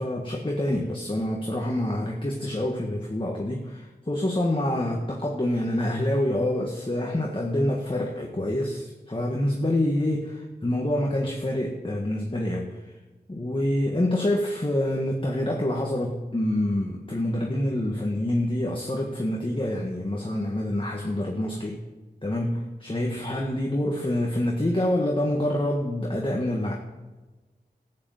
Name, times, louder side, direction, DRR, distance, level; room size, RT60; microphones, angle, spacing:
voice 1, 0.0-12.8 13.3-21.8 22.2-26.7, left 1 dB, 30° left, -1 dB, 1.7 m, -26 dB
13.5 x 8.0 x 7.7 m, 1.2 s
wide cardioid pair, 55°, 17 cm